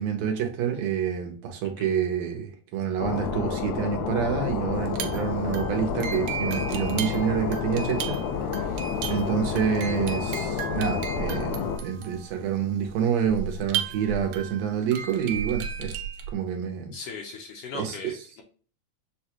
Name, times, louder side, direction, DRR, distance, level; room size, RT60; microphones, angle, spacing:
voice 1, 0.0-8.2 8.5-8.8 9.1-16.0 16.3-16.9 17.7-18.0, right 8 dB, 70° right, 3 dB, 1.9 m, -28 dB
sound 1, 3.0-11.8, left 6 dB, 90° left, 1.2 m, -29 dB
sound 2, 4.8-16.3, right 7 dB, 90° right, 2.1 m, -35 dB
voice 2, 16.9-18.4, left 4 dB, 70° left, 2 dB, 1.6 m, -39 dB
6.5 x 2.3 x 2.9 m, 0.40 s
omnidirectional pair, 3.3 m